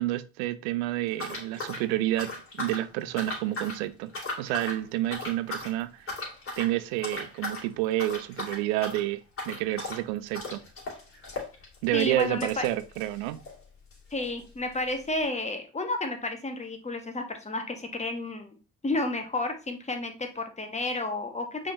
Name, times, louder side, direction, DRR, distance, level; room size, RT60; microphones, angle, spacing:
voice 1, 0.0-4.1 4.4-6.1 6.6-9.2 9.5-10.6 11.8-13.4, right 15 dB, 80° right, 0.5 m, -29 dB
sound 1, 1.1-2.9 3.2-3.8 4.1-4.8 5.1-5.7 6.1-6.7 7.0-7.7 7.9-13.6 13.9-14.0 14.2-14.3 15.0-15.1, left 2 dB, 40° left, 2.5 m, -37 dB
voice 2, 11.9-12.7 14.1-18.6 18.8-21.7, left 2 dB, 20° left, 1.1 m, -31 dB
5.5 x 3.4 x 2.7 m
hypercardioid pair, 60°, 33 cm